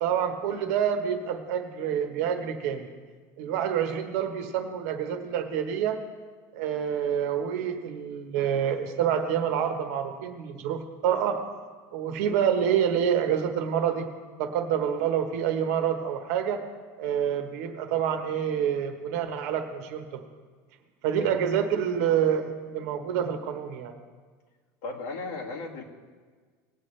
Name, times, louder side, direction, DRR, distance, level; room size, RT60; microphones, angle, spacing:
voice 1, 0.0-2.9 3.4-6.0 6.5-11.4 11.9-14.1 14.4-16.6 17.0-20.2 21.0-23.9, right 8 dB, 65° right, 6 dB, 1.3 m, -27 dB
voice 2, 24.8-25.8, left 3 dB, 65° left, -2 dB, 2.2 m, -36 dB
19.5 x 8.6 x 3.3 m, 1.5 s
cardioid pair, 175°, 9 cm